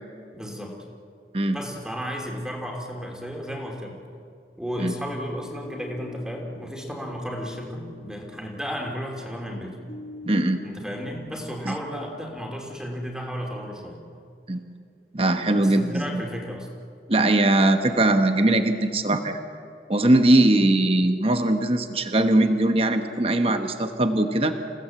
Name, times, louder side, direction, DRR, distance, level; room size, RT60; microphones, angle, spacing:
voice 1, 0.3-0.7 1.5-4.0 4.6-9.8 10.6-14.0 15.5-16.7, equal, 5° right, 0 dB, 3.0 m, -33 dB
sound 1, 5.4-12.7, left 2 dB, 60° left, 6.1 m, -45 dB
voice 2, 10.2-10.6 11.7-11.8 14.5-14.6 15.1-16.2 17.1-19.4 19.9-24.5, right 1 dB, 35° right, 7 dB, 1.1 m, -20 dB
29.0 x 17.0 x 7.8 m, 2.4 s
head